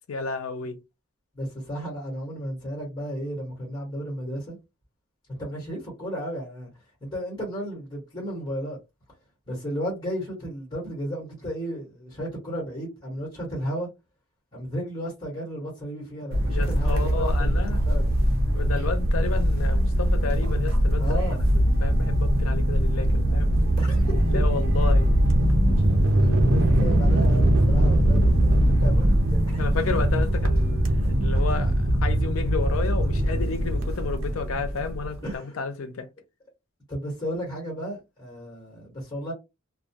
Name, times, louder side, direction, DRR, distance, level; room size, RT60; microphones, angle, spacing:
voice 1, 0.1-0.8 16.2-17.8 18.5-21.2 21.8-23.5 24.1-25.1 29.5-30.9 31.2-36.1, left 4 dB, 75° left, 0.5 m, -32 dB
voice 2, 1.3-4.6 5.3-6.7 7.0-8.8 9.5-13.9 14.5-17.5 17.8-18.1 21.0-21.5 23.8-24.1 26.2-29.6 35.2-35.5 36.9-39.3, equal, 20° left, 1.1 m, -34 dB
sound 1, 16.3-35.3, equal, 75° right, 0.6 m, -21 dB
2.2 x 2.2 x 2.7 m
head